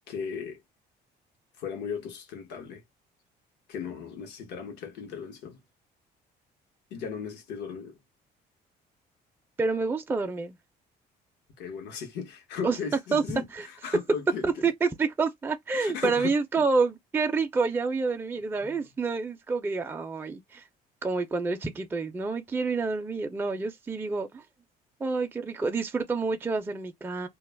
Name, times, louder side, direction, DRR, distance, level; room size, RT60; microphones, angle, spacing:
voice 1, 0.1-0.6 1.6-2.8 3.7-5.6 6.9-8.0 11.6-14.5 15.7-16.6 18.6-18.8, left 6 dB, 85° left, 0.9 m, -37 dB
voice 2, 9.6-10.5 12.6-12.8 13.1-13.6 14.4-20.6 21.0-24.4 25.0-27.3, right 4 dB, 15° right, 0.4 m, -28 dB
2.2 x 2.0 x 3.2 m
cardioid pair, 110°, 17 cm